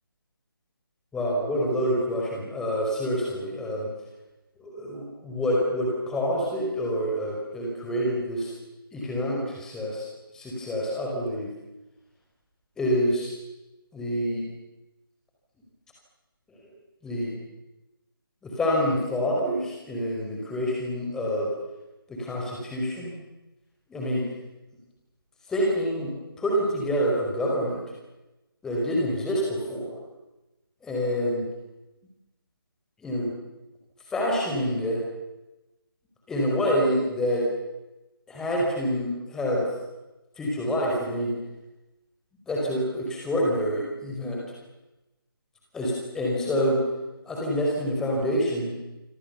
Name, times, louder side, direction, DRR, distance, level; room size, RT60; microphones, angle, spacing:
voice 1, 1.1-3.9 4.6-8.5 8.9-10.1 10.3-11.5 12.8-13.3 13.9-14.5 17.0-17.3 18.4-21.5 22.1-23.1 23.9-24.2 25.5-27.8 28.6-30.0 30.8-31.4 33.0-33.3 34.1-35.0 36.3-37.5 38.3-39.7 40.4-41.3 42.5-44.4 45.7-46.8 47.2-48.7, equal, 5° left, -2 dB, 5.1 m, -27 dB
27.0 x 26.0 x 7.1 m, 1.0 s
figure-of-eight pair, 155°, 12 cm